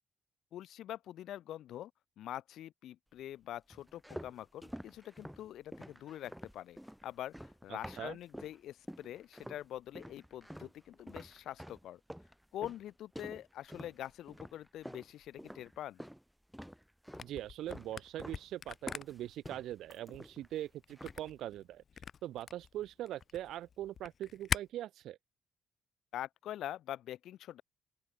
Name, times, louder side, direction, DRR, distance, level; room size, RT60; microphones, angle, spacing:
voice 1, 0.5-1.9 2.2-6.8 7.0-7.3 7.6-12.0 12.5-16.0 26.1-27.6, left 12 dB, 80° left, 1.3 m, -44 dB
sound 1, 3.7-8.6 8.9-9.7 10.0-16.2 16.5-17.3 17.7-18.4 18.7-20.6 20.9-21.3, equal, ahead, 2.3 m, -49 dB
voice 2, 7.7-8.2 17.2-21.8 22.2-25.2, right 13 dB, 80° right, 2.8 m, -42 dB
Camera, 17.1-24.6, left 7 dB, 50° left, 4.2 m, -42 dB
open air
cardioid pair, 90°, 0 cm